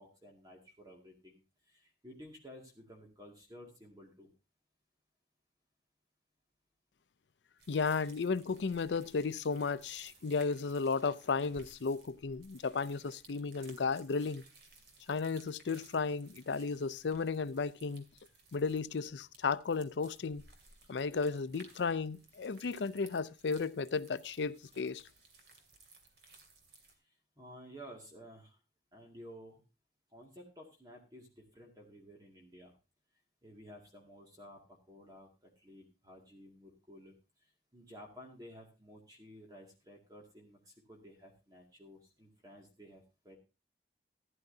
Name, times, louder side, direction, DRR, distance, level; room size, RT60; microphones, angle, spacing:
voice 1, 0.0-1.4 1.7-4.3 27.0-28.6 28.9-29.6 30.1-32.7 33.4-37.1 37.4-43.4, equal, 20° right, 2.1 m, -54 dB
sound 1, 7.6-26.9, right 3 dB, 65° right, 2.5 m, -60 dB
voice 2, 7.7-14.4 15.1-18.0 18.5-20.4 20.9-25.0, left 4 dB, 80° left, 0.5 m, -34 dB
15.5 x 11.0 x 2.7 m
head